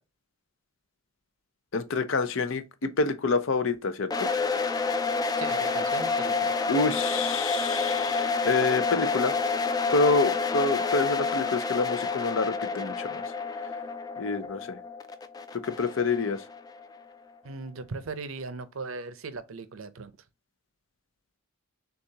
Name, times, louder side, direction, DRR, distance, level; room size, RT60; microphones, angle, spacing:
voice 1, 1.7-4.3 6.7-9.3 9.9-13.2 14.2-14.8 15.6-16.4, left 3 dB, 65° left, 0.6 m, -27 dB
sound 1, 4.1-17.0, left 4 dB, 20° left, 0.3 m, -29 dB
voice 2, 5.4-6.5 17.4-20.1, right 4 dB, 75° right, 0.6 m, -38 dB
6.6 x 2.4 x 2.8 m
head